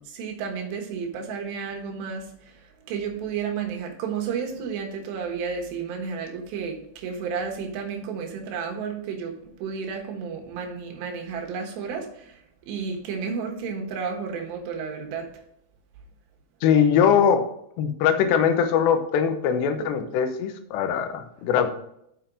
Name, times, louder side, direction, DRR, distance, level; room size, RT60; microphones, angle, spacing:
voice 1, 0.1-2.5 2.9-12.4 12.7-15.3, right 6 dB, 85° right, 1 dB, 3.5 m, -32 dB
voice 2, 16.6-17.4 17.8-21.7, left 7 dB, 90° left, 8 dB, 3.1 m, -21 dB
7.5 x 5.6 x 5.1 m, 0.74 s
omnidirectional pair, 4.8 m